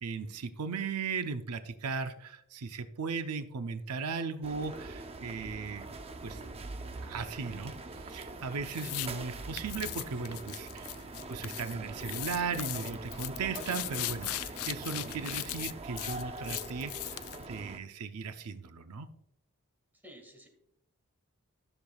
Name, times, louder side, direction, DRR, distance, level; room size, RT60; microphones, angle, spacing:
voice 1, 0.0-5.9 6.2-6.4 7.0-19.1, right 5 dB, 85° right, 9 dB, 0.6 m, -37 dB
sound 1, 4.4-17.8, right 2 dB, 25° right, 0.6 m, -43 dB
Human voice, 7.4-8.4 10.0-10.6, right 4 dB, 55° right, 1.4 m, -58 dB
sound 2, 8.7-9.1 9.6-11.7 12.0-17.4, left 16 dB, 65° left, 0.4 m, -38 dB
voice 2, 20.0-20.5, equal, 10° right, 1 dB, 1.8 m, -52 dB
13.0 x 6.7 x 2.3 m, 0.76 s
head